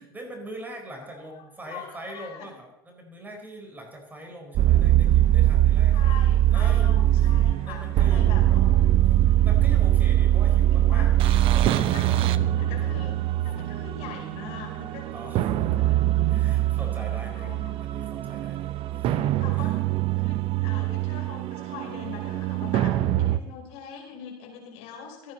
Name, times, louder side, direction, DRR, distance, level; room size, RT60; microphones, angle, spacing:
voice 1, 0.0-7.3 7.6-8.6 9.1-11.1 11.5-13.1 14.9-15.8 16.3-19.2 19.5-19.7, right 1 dB, 15° right, 2 dB, 4.5 m, -43 dB
voice 2, 1.6-2.5 5.9-8.9 10.7-11.1 11.5-15.1 15.8-16.3 17.3-17.9 18.9-19.8 20.2-25.3, left 7 dB, 55° left, 1 dB, 5.9 m, -42 dB
sound 1, 4.6-23.4, right 12 dB, 45° right, 0.9 m, -22 dB
26.5 x 9.7 x 4.2 m, 0.91 s
hypercardioid pair, 85°, 13 cm